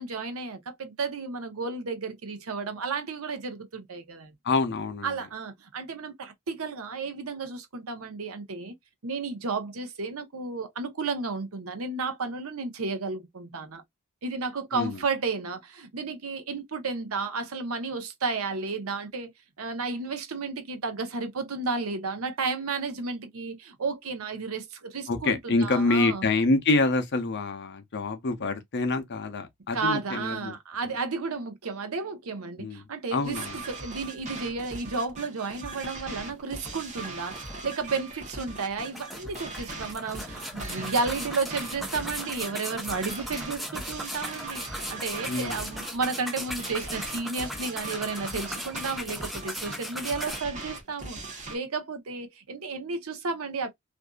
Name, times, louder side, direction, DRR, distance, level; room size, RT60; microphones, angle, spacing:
voice 1, 0.0-4.3 5.0-8.7 9.0-13.8 14.2-19.3 19.6-26.3 29.7-33.4 33.7-53.7, right 4 dB, 75° right, 0.8 m, -32 dB
voice 2, 4.4-5.2 14.7-15.0 25.1-30.5 30.8-30.9 32.6-32.8 33.1-33.6 45.3-45.6, left 3 dB, 50° left, 0.6 m, -26 dB
sound 1, 33.2-51.6, right 2 dB, 35° right, 1.1 m, -40 dB
sound 2, 36.6-36.7 37.0-38.0 38.4-38.5 38.9-50.4, equal, ahead, 0.5 m, -38 dB
2.6 x 2.5 x 2.2 m
head